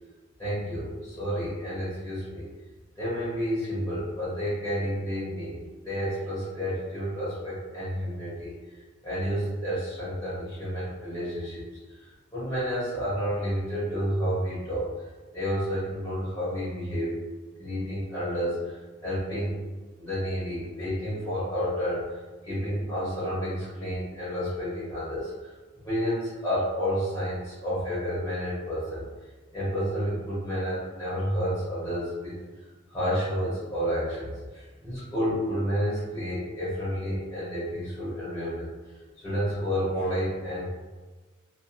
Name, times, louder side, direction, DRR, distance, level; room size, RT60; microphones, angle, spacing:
voice 1, 0.4-2.5 3.0-17.1 17.6-19.6 20.0-25.5 25.8-29.1 29.5-32.4 32.9-40.7, equal, 20° left, -11 dB, 0.7 m, -30 dB
2.4 x 2.2 x 2.5 m, 1.3 s
head